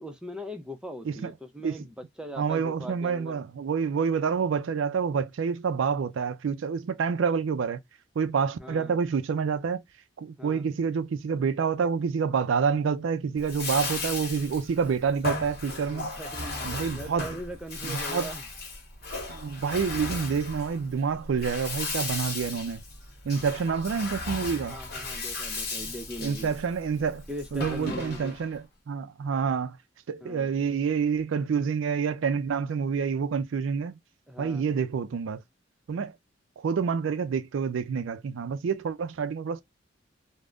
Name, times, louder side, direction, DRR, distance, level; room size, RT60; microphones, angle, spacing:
voice 1, 0.0-3.4 8.6-9.0 10.4-10.6 15.9-18.4 24.7-26.5 27.3-28.4 30.2-30.5 34.3-34.6, equal, 5° right, 0.5 m, -40 dB
voice 2, 2.4-7.8 8.2-9.8 10.2-16.1 16.6-17.4 17.8-18.3 19.3-22.8 23.2-24.8 26.2-27.3 27.5-29.8 30.1-34.0 34.4-35.4 35.9-36.2 36.6-39.6, right 6 dB, 85° right, 0.4 m, -28 dB
Bathtub (filling or washing), 13.4-28.5, left 3 dB, 50° left, 1.1 m, -36 dB
3.4 x 2.1 x 2.4 m
head